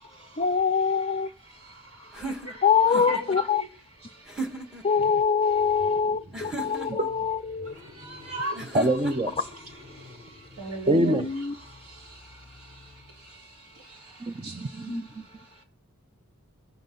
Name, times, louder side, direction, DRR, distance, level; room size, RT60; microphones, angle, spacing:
voice 1, 0.4-1.3 2.6-3.6 4.8-7.7 10.9-11.5 14.9-15.0, left 6 dB, 30° left, 0.5 m, -24 dB
voice 2, 1.4-3.7 4.0-4.9 5.4-6.0 6.4-6.9 7.6-8.8 9.9-11.2 11.6-15.6, right 1 dB, 70° right, 4.1 m, -40 dB
sound 1, 2.1-3.4 4.3-4.9 6.3-7.1 8.6-9.4, right 2 dB, 5° right, 1.5 m, -36 dB
Car / Engine starting, 4.8-13.6, left 3 dB, 40° right, 6.8 m, -51 dB
voice 3, 8.7-9.3 10.9-11.3 14.2-15.1, right 1 dB, 25° right, 0.6 m, -25 dB
22.5 x 7.6 x 3.8 m
head